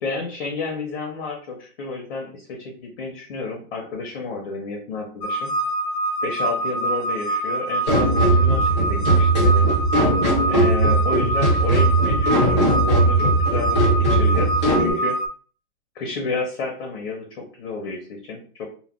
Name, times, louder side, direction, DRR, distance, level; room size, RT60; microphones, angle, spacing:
voice 1, 0.0-5.5 6.2-9.8 10.5-15.2 15.9-18.7, left 4 dB, 40° left, 1 dB, 0.6 m, -31 dB
sound 1, 5.2-15.3, right 2 dB, 85° left, 0.6 m, -25 dB
sound 2, 7.9-14.9, right 2 dB, 20° right, 0.3 m, -19 dB
2.2 x 2.2 x 3.5 m, 0.43 s
supercardioid pair, 170°, 45 cm